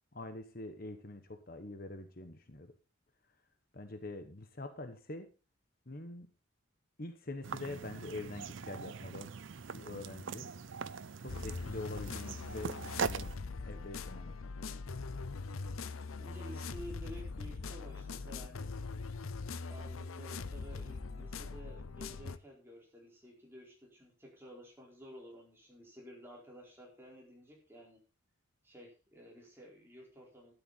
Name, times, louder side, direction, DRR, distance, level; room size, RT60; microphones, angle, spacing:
voice 1, 0.1-2.7 3.7-5.3 5.9-6.3 7.0-9.3 9.7-10.5 11.2-13.3 13.6-14.3, left 2 dB, 45° left, 7 dB, 1.1 m, -45 dB
sound 1, 7.4-13.3, right 5 dB, 65° right, 0.6 m, -41 dB
sound 2, 11.3-22.4, left 4 dB, 90° left, 0.7 m, -42 dB
voice 2, 16.2-18.7 19.7-28.0 28.6-30.5, equal, 10° right, -2 dB, 4.6 m, -52 dB
12.5 x 10.5 x 4.2 m, 0.33 s
head